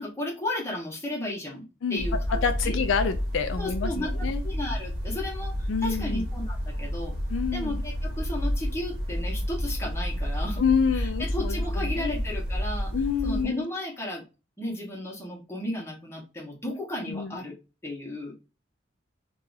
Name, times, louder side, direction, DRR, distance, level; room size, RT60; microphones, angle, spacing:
voice 1, 0.0-1.6 1.9-2.8 3.6-4.1 4.4-7.1 7.5-10.6 10.9-12.9 13.2-14.2 14.6-17.5 17.8-18.3, left 1 dB, 15° left, -2 dB, 1.0 m, -34 dB
sound 1, 2.0-13.4, equal, 55° right, 1.0 m, -30 dB
voice 2, 2.4-4.4 5.7-6.2 7.3-7.8 10.6-12.2 12.9-13.7 17.1-17.4, left 6 dB, 75° left, 8 dB, 0.4 m, -28 dB
2.7 x 2.3 x 3.9 m, 0.29 s
head